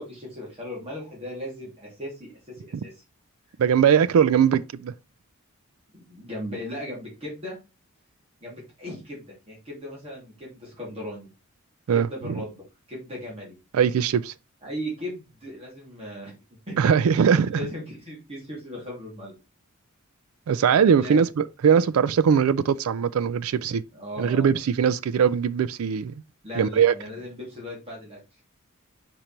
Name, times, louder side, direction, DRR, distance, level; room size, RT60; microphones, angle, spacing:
voice 1, 0.0-3.0 5.9-7.6 8.4-11.3 11.9-13.6 14.6-16.3 16.7-16.8 17.5-19.4 21.0-21.2 23.9-24.5 26.4-28.2, left 1 dB, 30° right, 2.8 m, -37 dB
voice 2, 3.6-4.9 11.9-12.3 13.7-14.3 16.8-17.6 20.5-23.8 24.2-26.1 26.6-26.9, right 7 dB, 75° right, 0.4 m, -21 dB
5.1 x 4.4 x 4.4 m
head